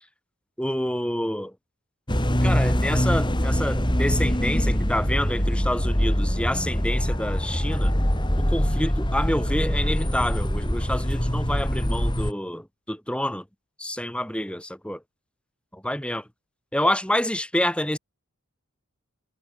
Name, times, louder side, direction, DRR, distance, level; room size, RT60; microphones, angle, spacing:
voice 1, 0.6-1.5 2.4-7.9 8.4-13.4 13.8-15.0 15.7-16.2 16.7-18.0, left 1 dB, 5° left, 4.8 m, -28 dB
sound 1, 2.1-12.3, equal, 20° left, 3.9 m, -23 dB
head